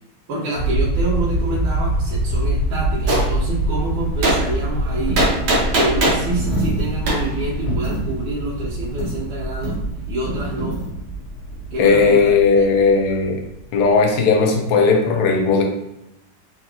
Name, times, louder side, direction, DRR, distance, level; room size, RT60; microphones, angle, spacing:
voice 1, 0.3-5.2 5.7-9.8 10.1-10.8 11.7-12.7, right 2 dB, 80° right, -6 dB, 1.5 m, -27 dB
sound 1, 0.5-13.8, right 1 dB, 65° left, 1.1 m, -25 dB
Gunshot gunfire, 3.1-3.3 4.2-4.4 5.2-6.2 7.1-7.2, right 1 dB, 65° right, 1.4 m, -18 dB
Coin (dropping), 3.7-12.3, right 1 dB, 40° left, 0.7 m, -30 dB
voice 2, 11.8-13.4 13.7-15.6, left 4 dB, 90° left, 3 dB, 1.5 m, -16 dB
3.8 x 2.3 x 2.8 m, 0.87 s
omnidirectional pair, 2.4 m